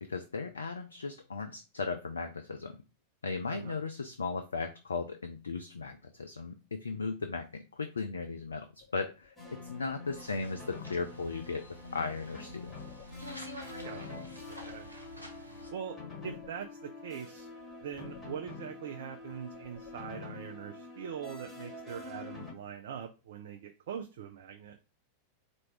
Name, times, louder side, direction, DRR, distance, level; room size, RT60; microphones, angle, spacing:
voice 1, 0.0-2.8 3.2-8.7 8.9-11.7 11.9-12.8, left 4 dB, 70° left, 8 dB, 0.4 m, -36 dB
sound 1, 8.8-10.8 12.2-13.6 13.9-15.3 15.7-17.0 17.4-18.7 19.1-20.5, left 8 dB, 45° left, 2.2 m, -59 dB
sound 2, 9.4-22.5, left 3 dB, 5° left, 2.0 m, -46 dB
sound 3, 10.1-15.7, right 1 dB, 90° left, 0.8 m, -49 dB
voice 2, 13.8-14.2 14.5-14.9 15.7-16.0 16.2-17.5 17.8-24.8, right 8 dB, 55° right, 5 dB, 0.4 m, -42 dB
4.5 x 2.6 x 4.5 m, 0.31 s
figure-of-eight pair, 90°, 0 cm